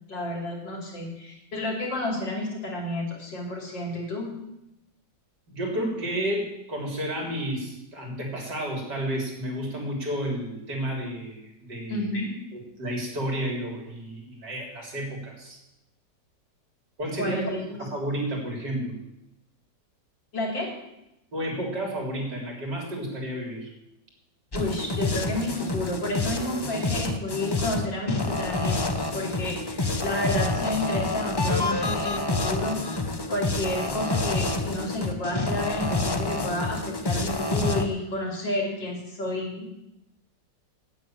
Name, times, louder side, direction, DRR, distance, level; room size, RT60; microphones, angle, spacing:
voice 1, 0.1-4.3 11.9-12.3 17.2-17.8 20.3-20.7 24.5-39.7, left 1 dB, 90° left, -1 dB, 3.9 m, -31 dB
voice 2, 5.5-12.1 12.5-15.6 17.0-17.4 17.8-19.0 21.3-23.7, right 1 dB, 65° right, 0 dB, 4.2 m, -31 dB
sound 1, 24.5-37.9, left 2 dB, 35° left, 0.4 m, -28 dB
8.9 x 8.9 x 9.1 m, 0.89 s
omnidirectional pair, 1.9 m